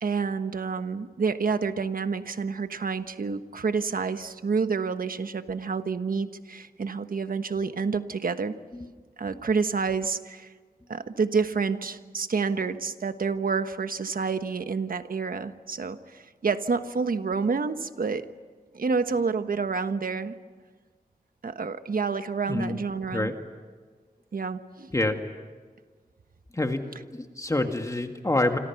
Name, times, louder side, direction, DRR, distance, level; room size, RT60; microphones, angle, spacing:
voice 1, 0.0-8.6 9.2-10.5 10.9-18.3 18.7-20.4 21.4-23.3 24.3-24.9, right 5 dB, 65° right, 10 dB, 1.3 m, -28 dB
voice 2, 26.5-28.6, left 2 dB, 20° left, 5 dB, 1.8 m, -27 dB
28.5 x 26.0 x 5.9 m, 1.5 s
wide cardioid pair, 110°, 16 cm